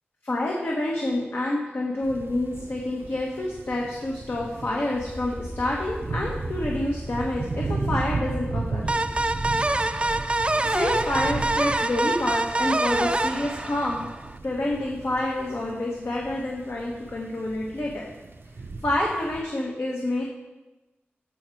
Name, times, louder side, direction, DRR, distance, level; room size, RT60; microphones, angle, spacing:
voice 1, 0.2-8.9 10.6-14.1 14.4-18.0 18.8-20.2, left 1 dB, 70° left, -3 dB, 1.3 m, -28 dB
sound 1, 2.0-19.4, right 3 dB, 70° right, 0.6 m, -35 dB
sound 2, 5.0-10.0, equal, 25° left, 0.8 m, -37 dB
sound 3, 8.9-14.3, right 2 dB, 25° right, 0.4 m, -25 dB
14.0 x 4.7 x 4.7 m, 1.1 s
wide cardioid pair, 55°, 4 cm